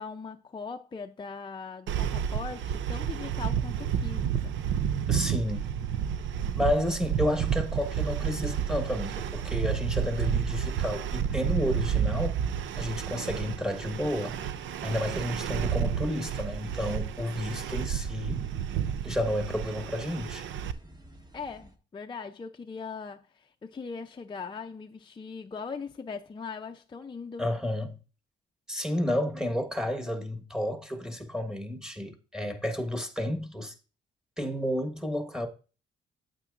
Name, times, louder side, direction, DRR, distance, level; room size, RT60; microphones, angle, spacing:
voice 1, 0.0-4.5 21.3-27.4, left 5 dB, 25° left, 0.5 m, -40 dB
sound 1, 1.9-21.8, right 1 dB, 20° right, 1.2 m, -52 dB
sound 2, 1.9-20.7, right 8 dB, 70° right, 0.5 m, -31 dB
voice 2, 5.1-5.7 6.6-12.4 12.8-14.4 14.8-18.4 19.0-20.5 27.4-28.0 28.7-33.7 34.4-35.5, left 1 dB, 5° right, 1.4 m, -31 dB
8.8 x 8.1 x 2.5 m
cardioid pair, 90°, 20 cm